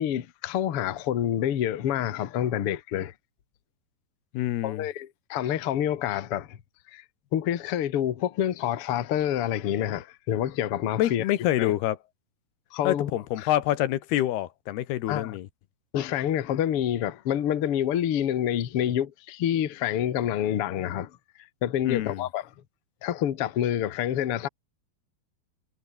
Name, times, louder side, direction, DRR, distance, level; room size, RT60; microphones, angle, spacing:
voice 1, 0.0-3.1 4.6-6.6 6.9-7.0 7.3-11.3 11.6-11.7 12.7-13.1 13.4-13.5 15.1-15.4 15.9-21.1 21.6-22.5 23.0-24.5, left 10 dB, 50° left, 1.7 m, -27 dB
voice 2, 4.3-4.8 11.0-12.0 12.8-15.5 21.8-22.2, left 14 dB, 85° left, 3.3 m, -26 dB
omnidirectional pair, 4.6 m